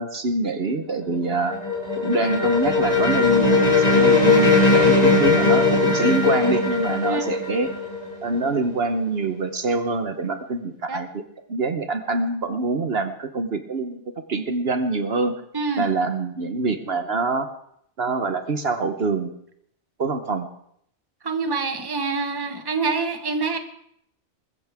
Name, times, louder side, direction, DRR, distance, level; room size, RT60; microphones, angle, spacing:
voice 1, 0.0-1.6 2.0-7.7 8.2-11.2 11.5-14.0 14.3-15.3 15.8-17.5 18.0-19.3 20.0-20.5, right 3 dB, 60° right, 7 dB, 1.2 m, -25 dB
sound 1, 0.9-8.7, left 3 dB, 35° left, 2.5 m, -19 dB
voice 2, 15.5-15.8 21.2-23.6, right 4 dB, 20° right, 6 dB, 1.2 m, -26 dB
21.0 x 15.0 x 3.6 m, 0.71 s
omnidirectional pair, 1.2 m